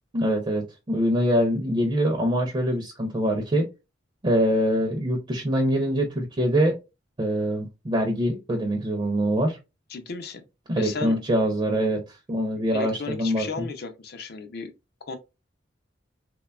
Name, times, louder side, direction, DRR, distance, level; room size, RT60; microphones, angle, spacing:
voice 1, 0.1-3.7 4.2-6.7 7.2-9.6 10.7-12.0 12.3-13.5, equal, 30° right, 0.4 m, -24 dB
voice 2, 9.9-10.5 10.7-11.2 12.7-14.7 15.1-15.2, left 4 dB, 60° left, 0.5 m, -34 dB
3.0 x 2.2 x 2.2 m
head